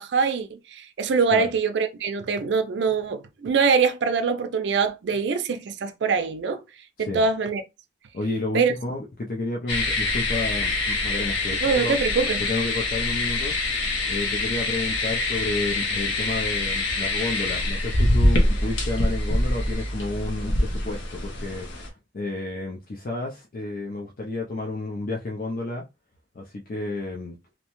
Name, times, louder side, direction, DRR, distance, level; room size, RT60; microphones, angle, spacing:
voice 1, 0.0-6.6 7.0-7.6 8.5-8.7 11.6-12.4, right 5 dB, 65° right, 0.4 m, -23 dB
voice 2, 8.1-12.0 12.4-13.5 14.0-21.7 22.1-25.8 26.3-27.3, left 2 dB, 45° left, 0.4 m, -31 dB
sound 1, 9.7-21.9, left 2 dB, 75° left, 0.7 m, -25 dB
2.7 x 2.1 x 2.9 m
head